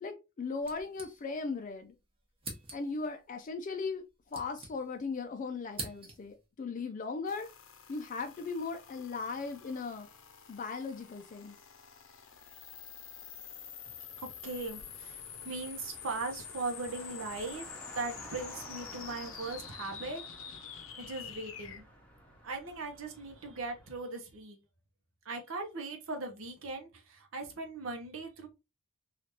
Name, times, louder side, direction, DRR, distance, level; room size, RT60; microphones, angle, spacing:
voice 1, 0.0-1.9 2.7-4.0 4.3-7.5 7.9-10.1 10.5-11.6, left 4 dB, 40° left, 0.3 m, -38 dB
sound 1, 0.6-1.6 1.9-2.0 2.4-3.1 3.9-5.2 5.4-6.4, right 3 dB, 30° right, 0.8 m, -45 dB
sound 2, 7.3-21.8, left 8 dB, 85° left, 0.6 m, -48 dB
voice 2, 14.2-17.7 17.9-20.2 21.0-21.8 22.4-24.6 25.2-28.5, right 3 dB, 80° right, 0.7 m, -39 dB
Car, 14.4-24.0, equal, 5° left, 0.8 m, -52 dB
3.2 x 2.4 x 2.8 m
head